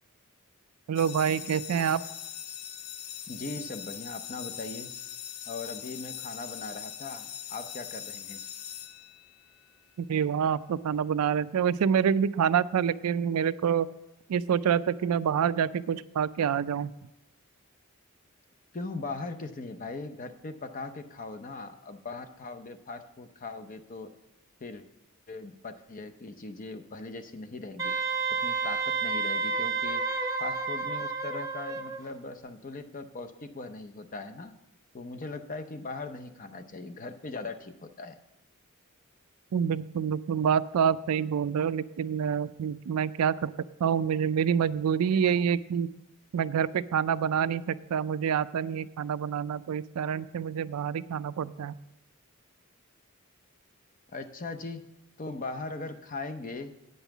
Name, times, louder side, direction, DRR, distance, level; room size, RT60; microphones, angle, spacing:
voice 1, 0.9-2.0 10.0-13.9 14.3-16.9 39.5-43.5 43.8-45.9 46.3-51.7, right 7 dB, 90° right, 16 dB, 0.4 m, -27 dB
sound 1, 1.0-9.6, left 9 dB, 85° left, 0.5 m, -41 dB
voice 2, 3.3-4.9 5.5-8.4 18.7-24.1 24.6-24.8 25.3-27.9 28.4-30.0 30.4-34.5 34.9-38.2 54.1-54.8 55.2-56.7, left 3 dB, 40° left, 8 dB, 0.7 m, -39 dB
Wind instrument woodwind instrument, 27.8-32.0, right 4 dB, 15° right, 0.6 m, -30 dB
9.1 x 5.5 x 7.0 m, 0.91 s
head